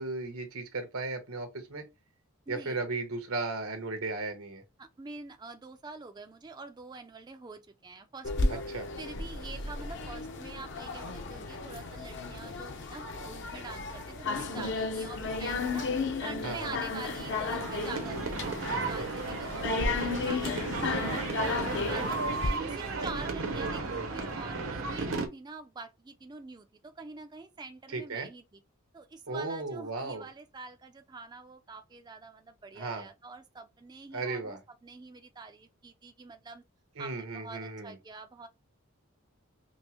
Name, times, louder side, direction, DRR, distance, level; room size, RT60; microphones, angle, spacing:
voice 1, 0.0-1.9 2.5-4.6 8.5-8.9 16.4-16.8 27.9-28.3 29.3-30.3 32.8-33.1 34.1-34.6 37.0-38.0, right 3 dB, 90° right, 1.1 m, -35 dB
voice 2, 2.5-2.8 4.8-8.6 9.0-15.9 16.2-21.2 21.5-28.6 28.9-36.6 37.0-38.5, right 3 dB, 20° right, 0.3 m, -46 dB
sound 1, 8.2-22.5, left 3 dB, 55° left, 0.7 m, -34 dB
sound 2, 16.8-25.3, right 3 dB, 70° right, 0.8 m, -34 dB
5.2 x 2.1 x 2.9 m
head